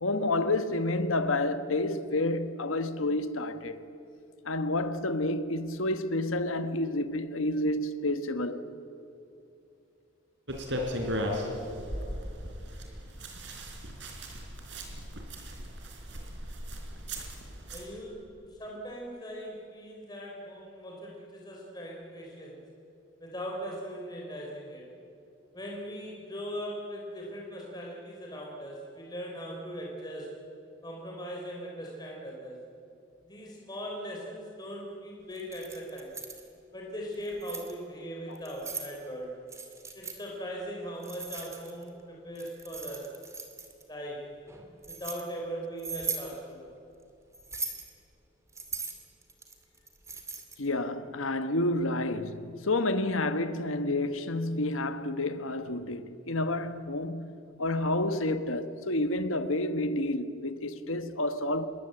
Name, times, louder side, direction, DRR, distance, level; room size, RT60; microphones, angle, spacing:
voice 1, 0.0-3.8 4.4-8.6 38.3-38.4 50.6-57.3 57.6-61.7, left 2 dB, 85° left, 1.4 m, -29 dB
sound 1, 10.5-17.9, equal, 60° right, 4.3 m, -37 dB
voice 2, 17.7-22.6 23.2-24.9 25.5-30.4 30.8-32.6 33.3-36.2 36.7-39.4 39.9-43.1 43.9-44.3 44.9-46.6, equal, 20° left, 3.7 m, -39 dB
Keys jangling, 35.4-36.4 37.1-37.7 38.4-38.9 39.5-40.2 41.0-41.9 42.4-43.8 44.5-45.2 45.8-46.3 47.3-47.9 48.5-50.7, right 5 dB, 15° right, 2.3 m, -39 dB
26.5 x 22.0 x 7.9 m
head